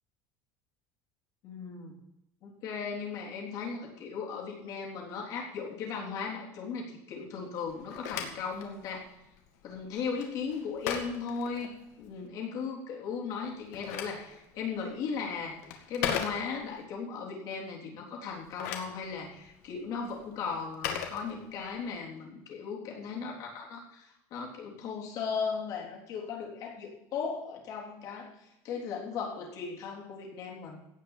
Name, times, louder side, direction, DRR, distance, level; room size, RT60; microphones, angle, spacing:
voice 1, 1.4-1.9 2.4-9.1 9.6-15.6 15.9-30.8, left 5 dB, 45° left, -1 dB, 3.5 m, -37 dB
Telephone, 7.7-12.2 13.4-16.9 18.3-21.9, left 8 dB, 90° left, 2.2 m, -39 dB
17.0 x 5.8 x 7.3 m, 0.88 s
cardioid pair, 170°, 8 cm